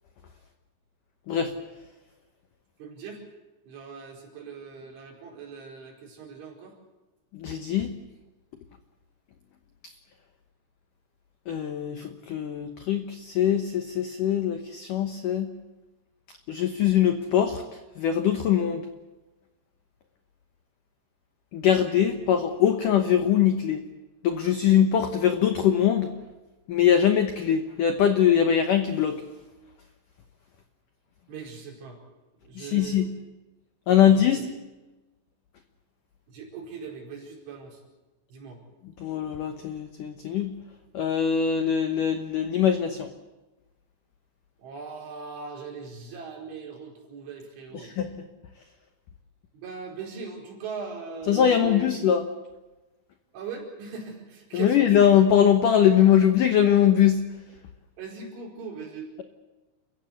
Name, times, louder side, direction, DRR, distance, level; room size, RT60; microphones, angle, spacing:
voice 1, 1.3-1.6 7.3-7.9 11.5-15.5 16.5-17.6 18.0-18.9 21.5-23.8 24.2-26.2 26.7-29.2 32.6-33.1 33.9-34.5 39.0-40.6 40.9-43.1 47.7-48.1 51.3-52.2 54.5-57.3, left 9 dB, 85° left, 7 dB, 1.8 m, -22 dB
voice 2, 2.8-3.3 3.7-6.7 22.0-22.1 31.3-32.0 32.4-33.0 34.0-34.4 36.3-37.8 38.3-38.6 44.6-47.9 49.5-51.9 53.3-54.9 58.0-59.1, right 5 dB, 70° right, -1 dB, 7.1 m, -40 dB
29.0 x 15.5 x 8.2 m, 1.1 s
omnidirectional pair, 5.6 m